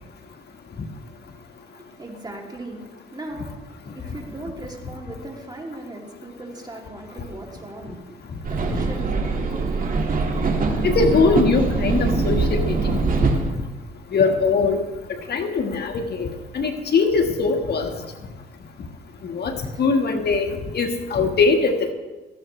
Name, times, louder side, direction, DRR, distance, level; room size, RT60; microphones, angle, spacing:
voice 1, 1.7-9.9 19.6-19.8 20.8-21.0, right 1 dB, 20° right, 0 dB, 2.8 m, -39 dB
sound 1, 8.4-13.5, right 3 dB, 45° right, 2.0 m, -22 dB
voice 2, 10.8-13.0 14.1-14.8 15.3-16.3 16.5-17.9 19.2-21.9, left 4 dB, 55° left, 4 dB, 1.6 m, -21 dB
17.5 x 14.5 x 3.2 m, 1.2 s
cardioid pair, 90°, 20 cm